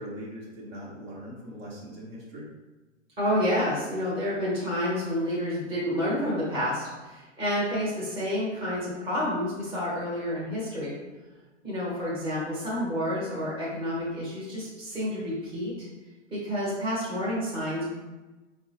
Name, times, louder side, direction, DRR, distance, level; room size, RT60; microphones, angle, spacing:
voice 1, 0.0-2.5, equal, 50° right, -5 dB, 1.2 m, -40 dB
voice 2, 3.2-11.0 11.6-15.7 16.3-17.9, equal, 15° right, -8 dB, 1.1 m, -29 dB
4.5 x 2.3 x 2.9 m, 1.2 s
hypercardioid pair, 120°, 37 cm